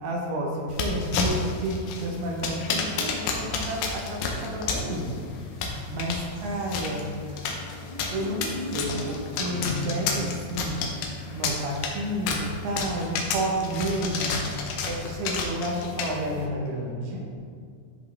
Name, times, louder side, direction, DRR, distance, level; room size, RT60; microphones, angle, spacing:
voice 1, 0.0-7.4 8.1-10.9 11.3-14.5 14.8-17.3, right 1 dB, 75° right, -1 dB, 2.5 m, -31 dB
sound 1, 0.7-16.5, left 4 dB, 75° left, 2.6 m, -32 dB
sound 2, 7.0-10.5, left 2 dB, 50° left, 2.3 m, -36 dB
13.0 x 5.5 x 3.5 m, 2.2 s
omnidirectional pair, 5.7 m